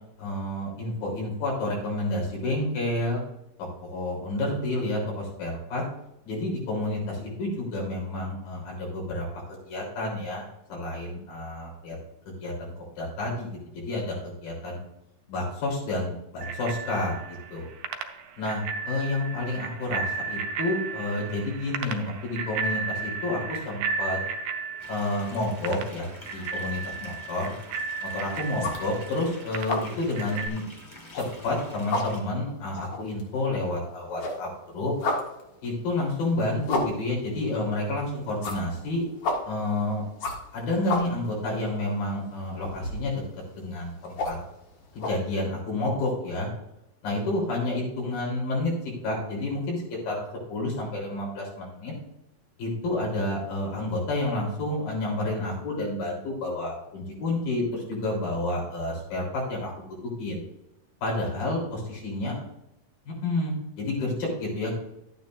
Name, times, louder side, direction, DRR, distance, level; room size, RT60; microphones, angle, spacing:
voice 1, 0.2-3.2 3.6-5.8 6.3-12.0 12.3-14.8 15.3-17.7 18.4-24.2 24.9-27.5 28.0-30.6 31.2-34.9 35.6-39.0 39.4-40.0 40.5-43.2 43.6-44.4 45.0-46.5 47.0-48.7 49.0-51.9 52.6-60.4 61.0-62.4 63.1-64.7, left 2 dB, 80° left, -2 dB, 5.3 m, -30 dB
Bicycle bell, 16.4-30.5, right 5 dB, 85° right, 2.5 m, -34 dB
sound 1, 24.8-32.2, left 1 dB, 35° left, 0.4 m, -48 dB
sound 2, 27.9-28.2 28.5-29.3 29.5-30.0 30.3-30.4 30.9-31.6 31.8-33.8 34.1-45.1, left 2 dB, 60° left, 2.8 m, -33 dB
11.5 x 9.3 x 2.6 m, 0.86 s
omnidirectional pair, 4.0 m